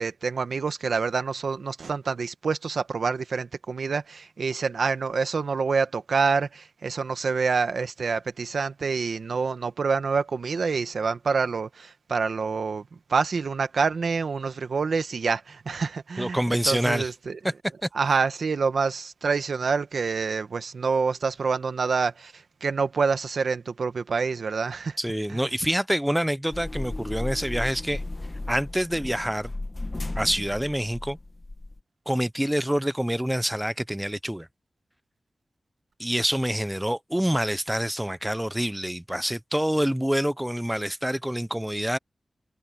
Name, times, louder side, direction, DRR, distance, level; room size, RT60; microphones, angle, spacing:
voice 1, 0.0-12.8 13.1-17.4 17.9-25.0 25.3-25.4, right 5 dB, 80° right, 1.4 m, -27 dB
voice 2, 16.2-17.1 17.4-17.5 17.8-17.9 25.0-28.0 28.5-29.5 30.2-31.2 32.1-34.5 36.0-42.0, equal, 5° right, 0.5 m, -26 dB
sound 1, 26.5-31.8, left 2 dB, 25° left, 1.2 m, -35 dB
wide cardioid pair, 120°, 0 cm